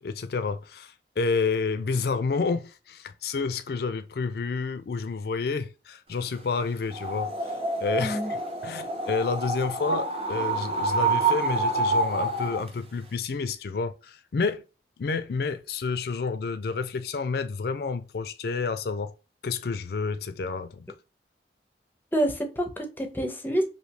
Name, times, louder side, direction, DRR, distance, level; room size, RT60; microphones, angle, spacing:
voice 1, 0.0-7.5 7.8-8.4 8.6-14.6 15.0-19.1 19.4-20.8, left 4 dB, 60° left, 0.4 m, -29 dB
sound 1, 6.9-12.7, right 2 dB, 35° right, 0.7 m, -27 dB
voice 2, 8.0-8.3 22.1-23.6, right 1 dB, 10° left, 0.6 m, -27 dB
3.2 x 2.7 x 2.7 m
head